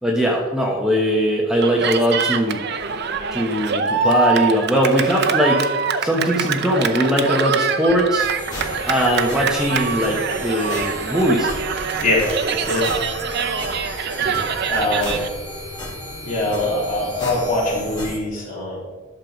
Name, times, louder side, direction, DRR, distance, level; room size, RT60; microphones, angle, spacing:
voice 1, 0.0-2.6 3.3-5.7 6.0-8.3 8.9-11.5, equal, 5° right, -2 dB, 1.1 m, -20 dB
Cheering, 1.6-15.3, right 6 dB, 55° right, 0.7 m, -24 dB
sound 1, 8.2-18.2, left 1 dB, 25° left, 3.7 m, -34 dB
voice 2, 11.9-12.3 12.6-12.9 14.2-15.2 16.2-18.8, left 2 dB, 45° left, -5 dB, 3.6 m, -23 dB
11.0 x 6.6 x 5.2 m, 1.3 s
head